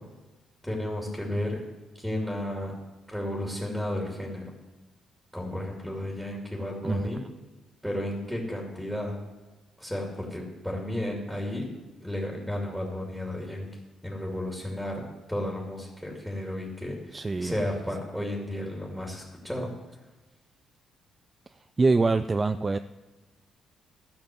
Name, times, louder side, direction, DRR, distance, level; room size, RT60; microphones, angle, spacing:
voice 1, 0.6-1.6 2.0-2.7 3.1-4.5 5.3-7.2 7.8-9.2 9.8-11.7 12.0-13.7 14.0-15.0 15.3-19.7, left 1 dB, ahead, 0 dB, 2.5 m, -33 dB
voice 2, 6.8-7.3 17.1-18.0 21.8-22.8, right 3 dB, 25° right, 11 dB, 0.4 m, -26 dB
12.5 x 6.0 x 7.7 m, 1.2 s
cardioid pair, 90°, 0 cm